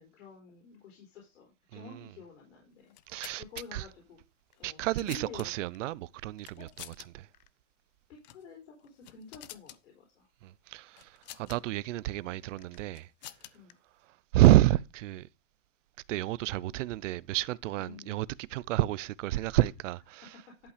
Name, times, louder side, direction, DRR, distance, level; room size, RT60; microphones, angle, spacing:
voice 1, 0.0-2.9 3.4-4.2 4.6-5.5 6.6-6.7 8.1-10.3 13.5-13.7 17.8-18.1, left 5 dB, 75° left, 3.9 m, -50 dB
sound 1, 2.8-3.7 4.5-5.8 6.4-7.1 7.3-7.5 8.2-8.5 8.8-9.8 11.0-11.6 12.6-13.7, left 14 dB, 35° left, 0.5 m, -49 dB
voice 2, 3.1-3.4 3.7-3.8 4.6-6.7 7.1-7.3 10.4-13.1 14.3-15.3 16.1-20.3, right 15 dB, 75° right, 0.6 m, -29 dB
11.0 x 5.6 x 5.0 m
supercardioid pair, 180°, 37 cm